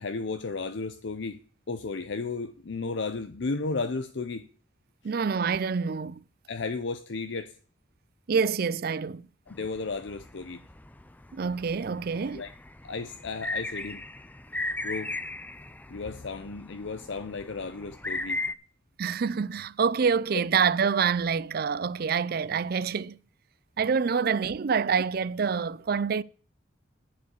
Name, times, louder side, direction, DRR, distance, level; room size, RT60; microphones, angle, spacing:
voice 1, 0.0-4.5 6.5-7.5 9.5-10.6 12.3-12.5 12.8-14.0 14.8-15.1 15.9-18.4, left 4 dB, 65° left, 0.6 m, -34 dB
voice 2, 5.0-6.2 8.3-9.3 11.3-12.4 19.0-23.2 23.8-26.2, right 6 dB, 50° right, 0.4 m, -26 dB
sound 1, 9.5-18.5, left 2 dB, 10° left, 0.4 m, -37 dB
11.0 x 4.8 x 8.2 m
head